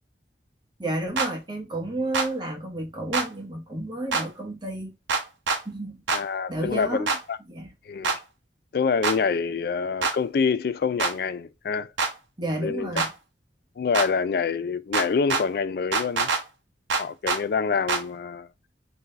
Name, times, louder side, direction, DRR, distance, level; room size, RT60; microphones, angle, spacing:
voice 1, 0.8-4.9 5.6-6.0 6.5-7.2 7.5-7.7 12.4-13.1, right 1 dB, 25° right, 0.9 m, -31 dB
sound 1, 1.2-1.3 2.1-2.3 3.1-3.3 4.1-4.2 5.1-5.6 6.1-6.2 7.1-7.2 8.0-8.2 9.0-9.2 10.0-10.2 11.0-11.1 12.0-12.1 13.0-13.1 13.9-14.1 14.9-15.4 15.9-16.4 16.9-17.4 17.9-18.0, right 4 dB, 80° right, 0.8 m, -24 dB
voice 2, 6.1-7.4 7.9-8.1 8.7-11.9 12.6-12.9 13.8-16.3 17.0-18.5, left 5 dB, 55° left, 0.3 m, -26 dB
4.0 x 2.7 x 3.1 m
head